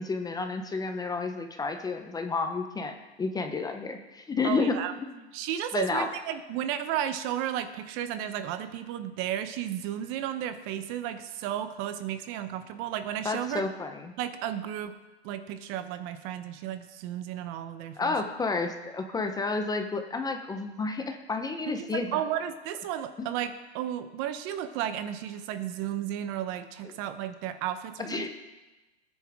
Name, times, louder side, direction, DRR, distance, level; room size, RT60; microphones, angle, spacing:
voice 1, 0.0-5.2 5.7-6.1 13.2-14.1 18.0-22.2 23.2-23.3 28.0-28.3, left 4 dB, 10° left, 6 dB, 0.8 m, -31 dB
voice 2, 4.4-4.9 5.3-13.6 14.2-14.9 15.2-18.1 21.7-28.3, right 10 dB, 35° right, 10 dB, 0.9 m, -33 dB
18.5 x 9.7 x 3.6 m, 1.1 s
hypercardioid pair, 125°, 34 cm